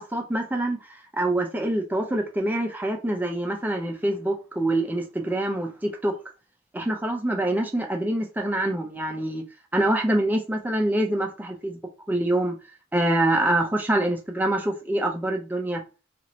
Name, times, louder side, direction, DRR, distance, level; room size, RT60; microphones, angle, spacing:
voice 1, 0.0-6.2 6.7-9.4 9.7-11.8 12.1-12.6 12.9-15.8, right 1 dB, 10° right, 0.6 m, -25 dB
2.8 x 2.5 x 3.0 m
head